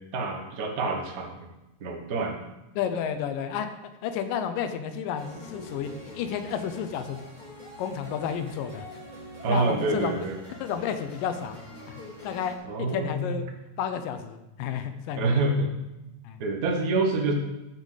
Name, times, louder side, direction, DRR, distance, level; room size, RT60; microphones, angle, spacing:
voice 1, 0.0-1.5 1.8-2.4 9.4-10.3 12.6-13.4 15.2-15.7 16.4-17.3, right 3 dB, 60° right, 2 dB, 0.9 m, -27 dB
voice 2, 2.8-3.7 4.0-7.2 7.8-8.9 9.5-10.3 10.6-13.4 13.8-15.5 16.2-16.4, left 8 dB, 85° left, 8 dB, 2.4 m, -31 dB
sound 1, 5.1-12.6, left 1 dB, 15° left, 2.3 m, -44 dB
14.5 x 6.8 x 4.0 m, 0.98 s
omnidirectional pair, 3.8 m